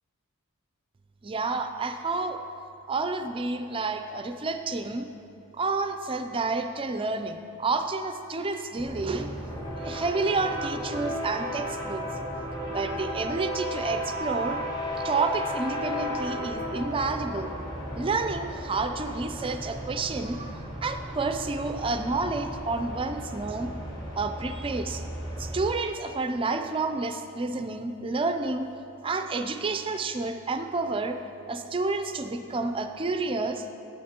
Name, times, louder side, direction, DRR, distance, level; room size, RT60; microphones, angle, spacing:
voice 1, 1.2-2.4 2.9-5.1 5.5-9.4 9.8-12.0 12.7-14.6 15.0-17.5 17.9-23.7 24.1-25.0 25.4-28.7 29.0-31.2 31.5-33.7, right 3 dB, 25° right, 7 dB, 0.4 m, -30 dB
sound 1, 8.8-25.7, equal, 20° left, 1.4 m, -35 dB
10.5 x 8.4 x 2.9 m, 2.6 s
head